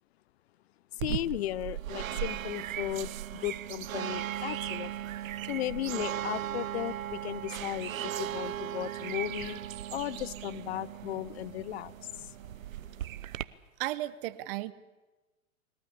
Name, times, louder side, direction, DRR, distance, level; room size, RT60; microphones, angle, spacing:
voice 1, 1.0-4.9 5.5-9.6 9.9-11.9 12.2-12.3, left 14 dB, 50° left, 20 dB, 0.6 m, -36 dB
sound 1, 1.0-13.4, right 11 dB, 70° right, 0.9 m, -37 dB
voice 2, 13.8-14.7, right 16 dB, 40° right, 15 dB, 1.1 m, -34 dB
21.5 x 19.0 x 8.4 m, 1.2 s
hypercardioid pair, 130°, 43 cm